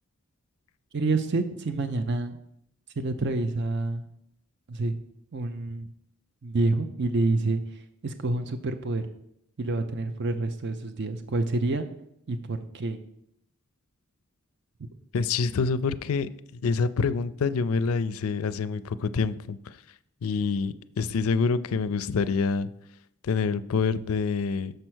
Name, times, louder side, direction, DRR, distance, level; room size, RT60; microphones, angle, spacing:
voice 1, 0.9-2.4 3.0-4.1 4.7-5.0 5.3-5.9 6.4-9.0 9.6-11.9 12.3-13.0, right 2 dB, 50° right, 8 dB, 0.5 m, -28 dB
voice 2, 15.1-19.8 20.2-22.7 23.2-24.7, left 5 dB, 80° left, 14 dB, 0.4 m, -27 dB
6.7 x 4.4 x 6.2 m, 0.76 s
head